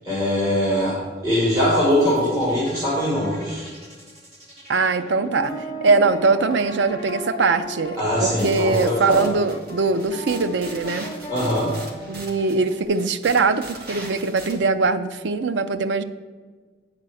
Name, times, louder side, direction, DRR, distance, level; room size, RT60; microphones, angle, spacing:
voice 1, 0.0-0.9 1.2-3.7 8.0-9.3 11.3-11.7, equal, 20° right, -9 dB, 2.1 m, -21 dB
sound 1, 1.8-8.0, right 2 dB, 35° right, 1.8 m, -41 dB
voice 2, 4.7-5.5 5.8-11.1 12.1-16.0, right 4 dB, 85° right, 11 dB, 0.5 m, -21 dB
sound 2, 5.4-12.9, left 1 dB, 20° left, 0.9 m, -36 dB
sound 3, 8.4-14.5, right 2 dB, 55° right, 1.2 m, -40 dB
8.8 x 4.5 x 6.2 m, 1.5 s
head